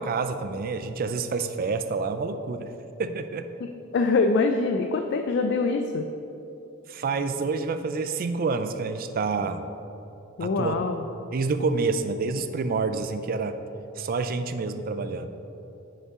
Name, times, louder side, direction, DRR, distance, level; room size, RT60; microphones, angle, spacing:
voice 1, 0.0-2.7 3.0-3.5 6.9-9.7 10.4-10.7 11.3-13.5 14.0-15.3, right 4 dB, 45° right, 9 dB, 0.4 m, -28 dB
voice 2, 3.6-6.1 10.4-11.0, left 3 dB, 55° left, 5 dB, 0.4 m, -24 dB
9.3 x 5.5 x 3.7 m, 2.9 s
head